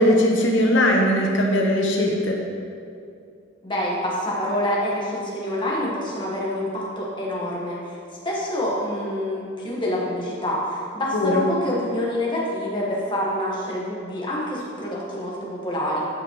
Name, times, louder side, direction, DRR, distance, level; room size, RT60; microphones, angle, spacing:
voice 1, 0.0-2.4 11.1-11.5, left 1 dB, 70° left, 0 dB, 1.0 m, -19 dB
voice 2, 3.6-8.0 8.2-16.1, left 1 dB, 25° left, -5 dB, 1.4 m, -27 dB
11.5 x 5.2 x 3.1 m, 2.5 s
head